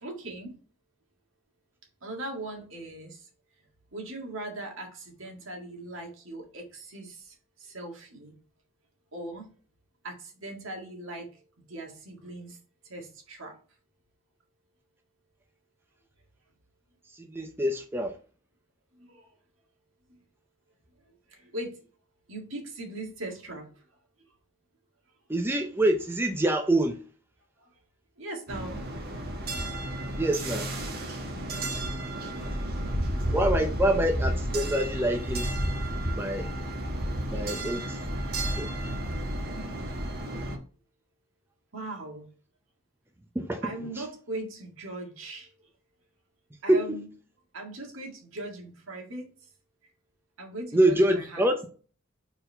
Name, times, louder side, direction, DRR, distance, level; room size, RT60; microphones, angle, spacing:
voice 1, 0.0-0.6 2.0-3.3 3.9-8.3 9.1-9.5 10.0-12.6 12.8-13.6 18.9-19.3 20.1-20.2 21.3-21.8 22.3-23.8 27.6-27.7 28.2-28.8 32.8-32.9 41.7-42.3 43.6-45.5 46.6-47.1 47.5-49.3 50.4-51.4, right 2 dB, 70° right, 1.8 m, -39 dB
voice 2, 17.2-18.1 25.3-27.0 30.2-30.7 33.3-35.5 36.1-36.5 37.3-38.0 38.6-38.7 43.4-43.6 46.7-47.0 50.7-51.7, right 1 dB, 10° right, 0.5 m, -25 dB
sound 1, 28.5-40.6, right 1 dB, 45° right, 1.3 m, -32 dB
4.5 x 4.1 x 5.4 m
head